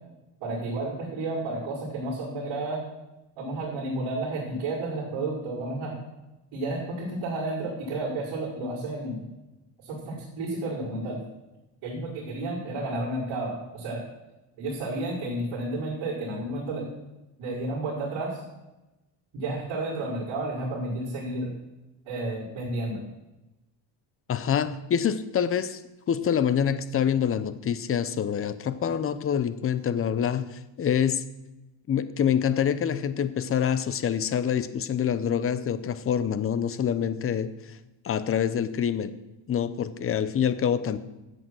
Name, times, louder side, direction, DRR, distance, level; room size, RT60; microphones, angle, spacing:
voice 1, 0.4-2.8 3.4-6.0 6.5-9.2 9.8-11.2 11.8-14.0 14.6-16.9 17.4-18.4 19.3-21.5 22.1-23.0, right 2 dB, 65° right, -10 dB, 5.3 m, -31 dB
voice 2, 24.3-25.8 26.1-31.2 31.9-37.8 38.0-39.1 39.5-41.0, left 8 dB, 25° left, 14 dB, 0.6 m, -26 dB
13.5 x 8.0 x 6.2 m, 1.0 s
cardioid pair, 140°, 50 cm